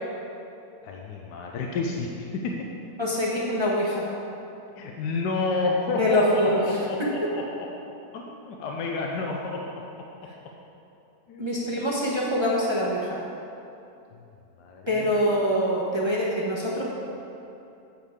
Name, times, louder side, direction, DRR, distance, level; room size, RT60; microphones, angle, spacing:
voice 1, 0.8-2.6 4.8-7.7 8.1-9.8 11.3-11.5 14.1-14.3 14.6-15.1, left 3 dB, 80° left, 0 dB, 1.3 m, -30 dB
voice 2, 3.0-4.0 6.0-6.6 7.0-7.3 11.4-13.2 14.9-16.8, equal, 20° right, -5 dB, 0.8 m, -24 dB
8.4 x 8.1 x 3.6 m, 2.8 s
omnidirectional pair, 1.8 m